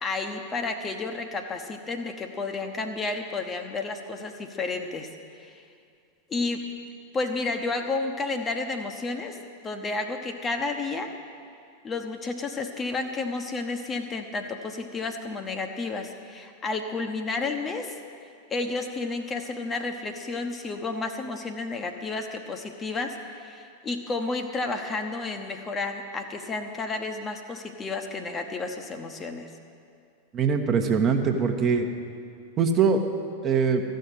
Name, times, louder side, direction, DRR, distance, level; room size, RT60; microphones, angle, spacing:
voice 1, 0.0-5.1 5.4-5.6 6.3-6.6 7.1-9.4 9.6-11.1 11.8-18.0 18.5-29.5, left 3 dB, 20° left, 5 dB, 1.0 m, -31 dB
voice 2, 30.3-31.9 32.6-33.0 33.4-33.8, right 5 dB, 30° right, 4 dB, 1.1 m, -22 dB
14.0 x 6.6 x 9.7 m, 2.4 s
figure-of-eight pair, 90°, 0 cm